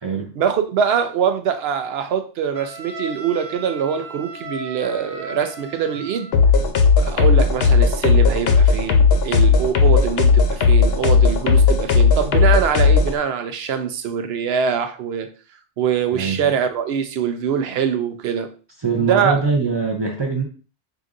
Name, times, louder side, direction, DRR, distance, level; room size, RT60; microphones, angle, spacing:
voice 1, 0.4-6.3 7.0-15.3 15.8-18.5 18.9-19.4, right 7 dB, 65° right, 8 dB, 0.7 m, -23 dB
Wind instrument woodwind instrument, 2.5-6.4, right 2 dB, 10° left, 1.1 m, -36 dB
sound 1, 6.3-13.1, left 5 dB, 65° left, 0.8 m, -15 dB
voice 2, 16.1-16.5 18.8-20.4, right 5 dB, 35° right, -1 dB, 0.5 m, -22 dB
4.8 x 2.6 x 2.5 m, 0.36 s
omnidirectional pair, 1.2 m